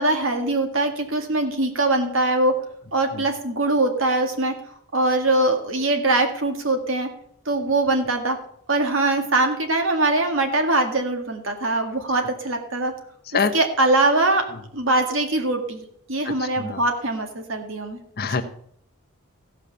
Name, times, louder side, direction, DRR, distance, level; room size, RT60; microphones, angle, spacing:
voice 1, 0.0-2.5 2.9-4.5 4.9-7.1 7.5-8.4 8.7-12.9 13.5-14.4 14.7-18.0, right 2 dB, 60° right, 5 dB, 1.9 m, -22 dB
voice 2, 16.2-16.8 18.2-18.4, left 5 dB, 45° left, 8 dB, 0.9 m, -25 dB
15.0 x 5.7 x 6.8 m, 0.68 s
head